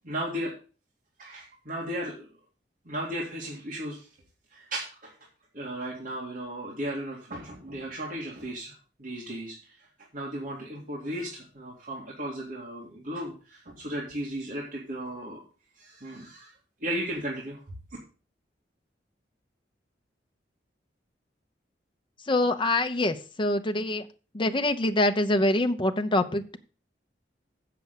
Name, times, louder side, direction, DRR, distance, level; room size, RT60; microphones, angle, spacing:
voice 1, 0.0-0.5 1.2-2.3 2.9-4.1 4.5-5.1 5.5-9.9 10.1-15.4 15.8-16.5 16.8-17.6, right 1 dB, 50° right, 2.4 m, -35 dB
voice 2, 22.3-24.1 24.3-26.6, left 1 dB, 30° left, 0.8 m, -25 dB
7.7 x 6.9 x 6.7 m
head